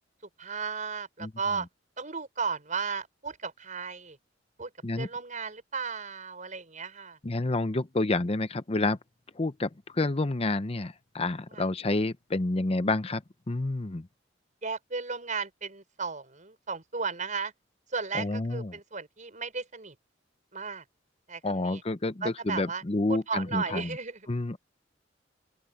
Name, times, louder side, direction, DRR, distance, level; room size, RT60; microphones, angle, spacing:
voice 1, 0.4-1.7 2.0-4.2 4.6-4.7 5.0-7.2 11.5-11.7 14.6-17.5 17.9-20.0 20.5-20.8 21.3-21.8 22.2-22.8 23.1-24.3, right 5 dB, 45° right, 5.5 m, -35 dB
voice 2, 7.2-9.0 9.3-14.1 18.1-18.8 21.4-24.0 24.3-24.6, left 2 dB, 30° left, 0.7 m, -29 dB
open air
head